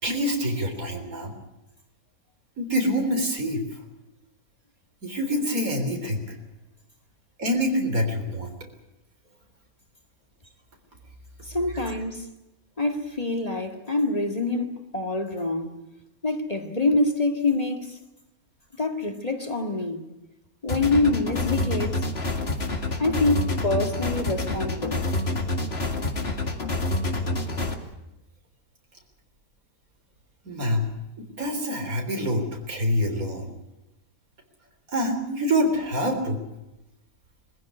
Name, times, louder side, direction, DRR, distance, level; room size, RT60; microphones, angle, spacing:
voice 1, 0.0-1.3 2.6-3.6 5.0-6.2 7.4-8.5 30.5-30.9 31.2-33.5 34.9-36.4, equal, 75° right, 4.2 m, -26 dB
voice 2, 11.4-12.3 12.8-15.8 16.2-18.0 18.8-20.1 20.6-22.0 23.0-25.0, left 2 dB, 25° left, 2.0 m, -26 dB
sound 1, 20.7-27.7, left 2 dB, 45° left, 2.4 m, -27 dB
22.5 x 15.5 x 9.7 m
omnidirectional pair, 1.5 m